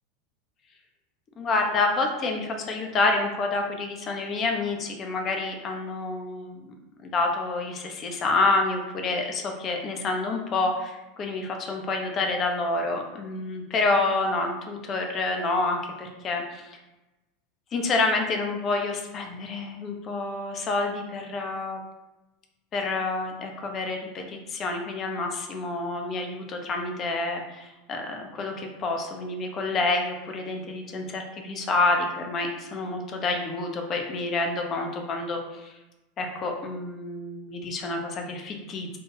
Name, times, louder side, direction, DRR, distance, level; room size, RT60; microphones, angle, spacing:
voice 1, 1.4-6.7 7.0-16.8 17.7-21.8 22.7-35.7 36.2-39.0, left 3 dB, 35° left, 3 dB, 0.4 m, -28 dB
2.2 x 2.1 x 2.9 m, 1.0 s
figure-of-eight pair, 80°, 0 cm